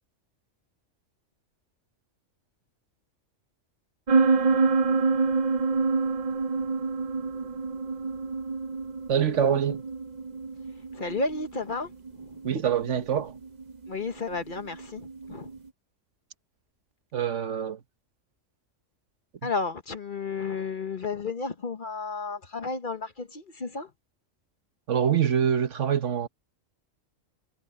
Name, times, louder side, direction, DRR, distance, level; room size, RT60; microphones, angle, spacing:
sound 1, 4.1-15.6, right 4 dB, 35° right, 1.0 m, -28 dB
voice 1, 9.1-9.8 12.4-13.3 17.1-17.8 19.4-19.5 24.9-26.3, right 8 dB, 70° right, 1.4 m, -25 dB
voice 2, 10.9-11.9 12.2-12.3 13.9-15.5 19.4-23.9, left 4 dB, 40° left, 1.2 m, -32 dB
omnidirectional pair, 1.3 m